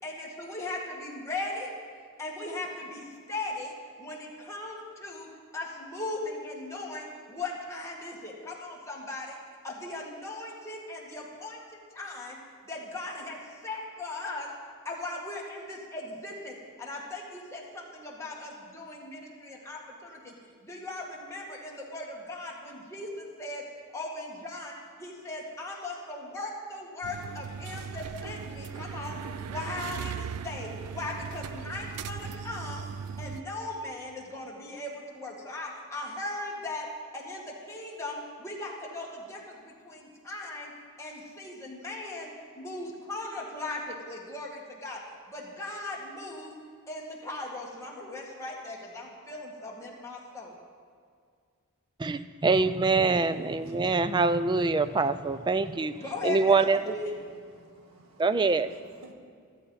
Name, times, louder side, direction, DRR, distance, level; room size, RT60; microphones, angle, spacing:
voice 1, 0.0-1.7 2.2-12.4 12.6-14.6 14.8-20.3 20.6-23.7 23.9-32.9 33.2-46.6 46.9-50.6 56.0-57.1, left 2 dB, 15° left, -3 dB, 2.0 m, -38 dB
sound 1, 27.0-33.4, right 6 dB, 90° right, 0.4 m, -38 dB
voice 2, 52.0-55.9 56.2-56.9 58.2-58.7, right 3 dB, 20° right, 13 dB, 0.3 m, -24 dB
voice 3, 53.2-54.2 54.7-56.1 57.5-58.3 58.7-59.1, right 2 dB, 70° right, 3 dB, 1.6 m, -56 dB
14.0 x 13.5 x 4.1 m, 2.1 s
head